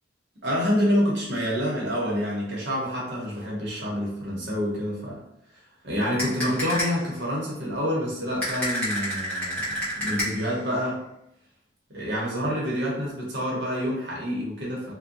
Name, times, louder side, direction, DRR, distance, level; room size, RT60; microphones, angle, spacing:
voice 1, 0.4-5.2 5.8-11.0 11.9-14.9, equal, 60° right, -4 dB, 0.9 m, -27 dB
sound 1, 6.2-7.1 8.4-10.6, equal, 5° left, 0.8 m, -30 dB
2.6 x 2.2 x 2.6 m, 0.80 s
head